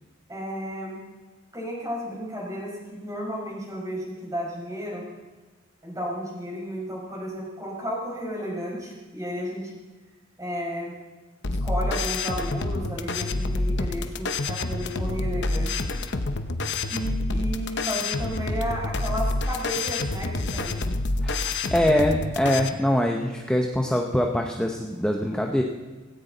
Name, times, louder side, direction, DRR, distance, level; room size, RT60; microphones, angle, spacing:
voice 1, 0.3-1.0 1.5-5.1 5.8-9.7 10.4-10.9 11.6-15.8 16.9-20.8, equal, 15° right, -3 dB, 5.2 m, -33 dB
sound 1, 11.4-22.7, left 2 dB, 60° left, 0.9 m, -28 dB
voice 2, 21.2-25.6, left 1 dB, 5° left, 1 dB, 0.8 m, -23 dB
17.5 x 17.0 x 4.0 m, 1.3 s
head